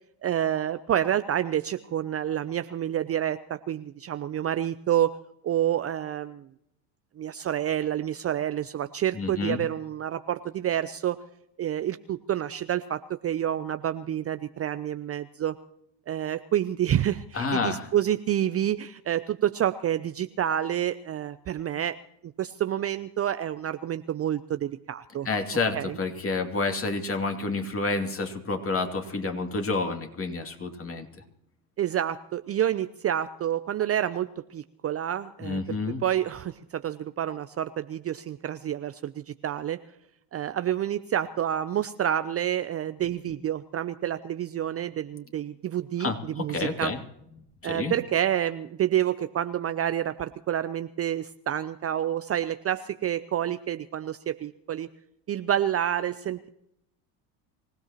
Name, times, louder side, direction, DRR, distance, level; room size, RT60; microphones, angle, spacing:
voice 1, 0.2-5.2 5.4-6.5 7.2-11.2 11.6-15.6 16.1-22.0 22.4-25.3 25.8-26.0 31.8-39.8 40.3-46.9 47.6-54.9 55.3-56.5, right 10 dB, 30° right, 11 dB, 0.6 m, -28 dB
voice 2, 9.1-9.6 17.3-17.9 25.2-31.1 35.4-36.0 46.0-47.0 47.6-47.9, left 3 dB, 25° left, 4 dB, 2.7 m, -29 dB
25.5 x 16.5 x 3.0 m, 0.77 s
hypercardioid pair, 85°, 48 cm